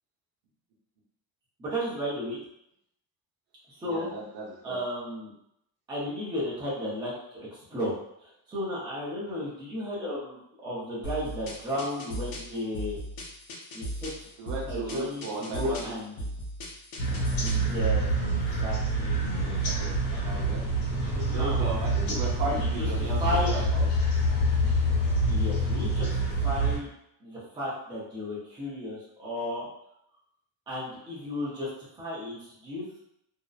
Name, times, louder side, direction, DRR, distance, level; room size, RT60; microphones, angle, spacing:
voice 1, 1.6-2.4 3.7-4.1 4.6-5.3 5.9-13.0 13.7-14.3 14.7-16.2 17.4-19.8 21.1-21.6 22.3-23.7 25.3-26.9 27.2-29.7 30.7-31.7 31.9-33.0, left 1 dB, 10° right, -8 dB, 0.5 m, -34 dB
voice 2, 3.8-4.8 14.4-15.9 19.3-20.6 21.3-23.8, right 2 dB, 75° right, -3 dB, 0.9 m, -36 dB
sound 1, 11.0-17.7, equal, 60° left, 0.7 m, -38 dB
sound 2, 17.0-26.8, right 1 dB, 80° left, 1.2 m, -26 dB
2.6 x 2.0 x 2.3 m, 0.76 s
cardioid pair, 175°, 41 cm